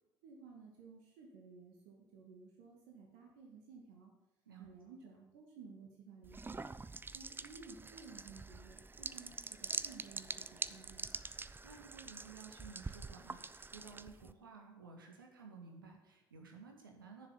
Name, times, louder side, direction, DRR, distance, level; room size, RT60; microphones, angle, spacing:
voice 1, 0.2-4.1 4.6-6.8 7.1-11.1, right 4 dB, 70° right, -1 dB, 2.2 m, -56 dB
sound 1, 6.2-14.3, right 3 dB, 20° right, 0.7 m, -45 dB
voice 2, 11.4-17.3, right 5 dB, 90° right, 2 dB, 2.1 m, -55 dB
10.5 x 7.3 x 9.0 m, 0.94 s
hypercardioid pair, 55°, 11 cm